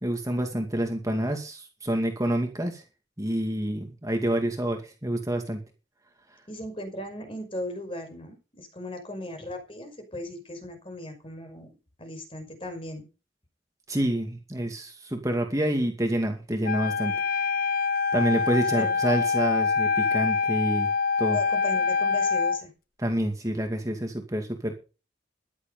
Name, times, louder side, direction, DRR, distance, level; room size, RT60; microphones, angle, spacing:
voice 1, 0.0-2.8 3.2-5.6 13.9-17.1 18.1-20.9 21.2-21.4 23.0-24.7, right 1 dB, 20° right, 4 dB, 2.3 m, -28 dB
voice 2, 6.5-11.7 12.0-13.1 18.7-19.0 21.3-22.7, left 1 dB, 30° left, 6 dB, 5.6 m, -37 dB
Wind instrument woodwind instrument, 16.6-22.6, left 5 dB, 50° left, 0.8 m, -25 dB
14.5 x 12.0 x 5.5 m, 0.33 s
head